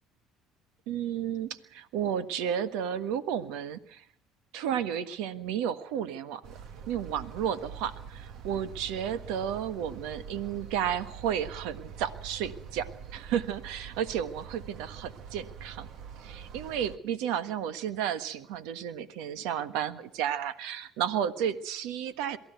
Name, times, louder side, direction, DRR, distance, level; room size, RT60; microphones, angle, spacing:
voice 1, 0.9-4.0 4.5-6.4 6.9-15.9 16.2-22.4, right 9 dB, 80° right, 12 dB, 1.5 m, -32 dB
sound 1, 6.4-17.0, right 7 dB, 65° right, 1.7 m, -45 dB
23.0 x 15.0 x 8.2 m, 0.68 s
supercardioid pair, 90°, 0 cm